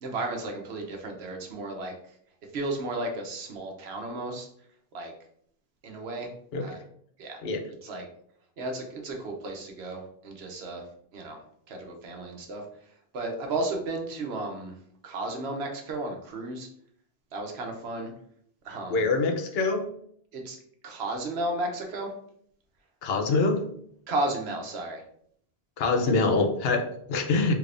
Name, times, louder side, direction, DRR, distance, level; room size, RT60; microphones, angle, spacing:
voice 1, 0.0-1.9 2.5-4.5 4.9-5.1 5.8-6.3 6.6-6.8 7.2-7.4 7.8-8.0 8.6-10.8 11.1-11.4 11.7-12.6 13.1-14.8 15.0-16.7 17.3-18.1 18.6-19.0 20.3-20.6 20.8-22.1 24.1-25.0, right 2 dB, 80° right, 2 dB, 1.0 m, -33 dB
voice 2, 18.9-19.9 23.0-23.6 25.8-27.5, left 3 dB, 75° left, 4 dB, 0.8 m, -25 dB
3.3 x 2.5 x 3.3 m, 0.65 s
omnidirectional pair, 1.1 m